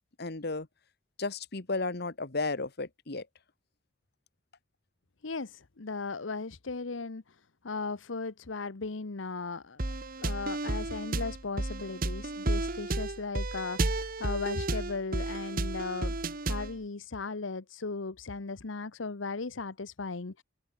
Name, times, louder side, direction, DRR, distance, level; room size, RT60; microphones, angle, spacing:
voice 1, 0.2-0.7 1.2-3.2, left 3 dB, 55° left, 1.6 m, -33 dB
voice 2, 5.2-7.3 7.6-9.9 10.2-16.2 16.5-20.4, left 4 dB, 85° left, 1.0 m, -37 dB
sound 1, 9.8-16.8, right 2 dB, 50° right, 1.7 m, -32 dB
head